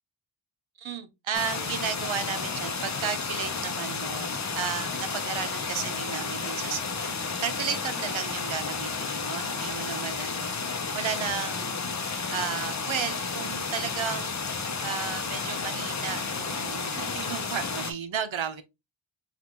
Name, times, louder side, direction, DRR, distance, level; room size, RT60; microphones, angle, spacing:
voice 1, 0.8-18.6, right 7 dB, 70° right, 0.8 m, -34 dB
sound 1, 1.3-17.9, left 4 dB, 35° left, 0.7 m, -32 dB
5.0 x 2.5 x 2.9 m
wide cardioid pair, 60°, 48 cm